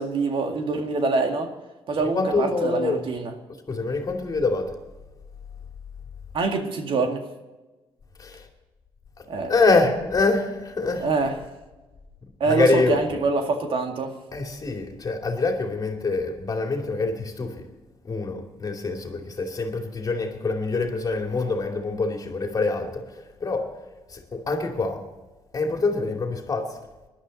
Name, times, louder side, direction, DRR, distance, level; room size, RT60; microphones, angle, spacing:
voice 1, 0.0-1.5 1.9-3.3 6.3-7.3 9.3-9.5 11.0-11.3 12.4-14.1, right 3 dB, 60° right, 2.1 m, -25 dB
voice 2, 2.1-3.0 3.7-4.8 8.2-8.5 9.2-11.1 12.5-13.2 14.3-17.7 18.0-23.8 24.1-25.1 25.5-26.8, left 3 dB, 40° left, 2.6 m, -25 dB
19.5 x 11.5 x 4.1 m
cardioid pair, 100°, 10 cm